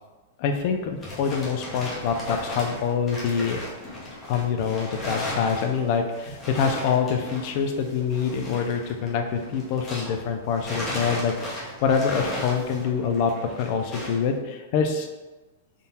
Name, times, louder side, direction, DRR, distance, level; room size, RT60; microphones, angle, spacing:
voice 1, 0.4-3.6 4.3-15.1, left 6 dB, 40° left, 5 dB, 0.4 m, -25 dB
sound 1, 0.6-10.2 10.5-14.3, left 1 dB, 15° left, 0.9 m, -36 dB
3.7 x 2.3 x 4.2 m, 1.1 s
supercardioid pair, 170°, 0 cm